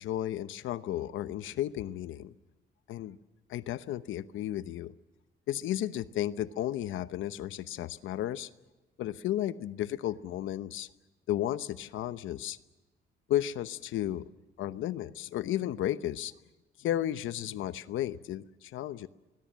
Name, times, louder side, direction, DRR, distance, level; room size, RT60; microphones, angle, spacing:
voice 1, 0.0-2.3 2.9-3.2 3.5-4.9 5.5-8.5 9.0-10.9 11.3-12.6 13.3-14.2 14.6-16.3 16.8-19.1, left 12 dB, 80° left, 14 dB, 0.9 m, -33 dB
24.5 x 21.0 x 7.5 m, 1.1 s
cardioid pair, 90°, 20 cm